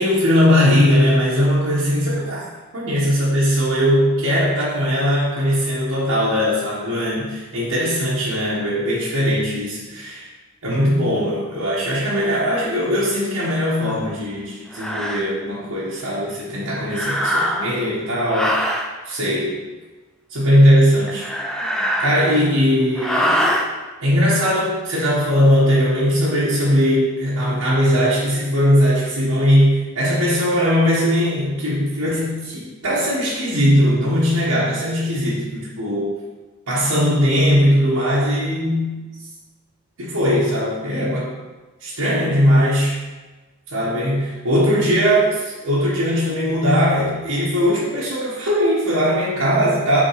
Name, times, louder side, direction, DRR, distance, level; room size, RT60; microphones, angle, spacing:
voice 1, 0.0-2.4 2.7-10.3 10.6-18.7 19.0-19.6 20.3-21.3 22.0-23.4 24.0-36.2 36.7-39.1 40.0-41.3 41.8-43.0 43.7-50.0, equal, 80° right, -8 dB, 1.3 m, -19 dB
sound 1, 13.8-14.0 14.7-15.3 16.9-17.8 18.3-18.9 21.1-22.5 23.0-23.7, equal, 5° left, 0.4 m, -23 dB
6.3 x 3.7 x 5.6 m, 1.2 s
head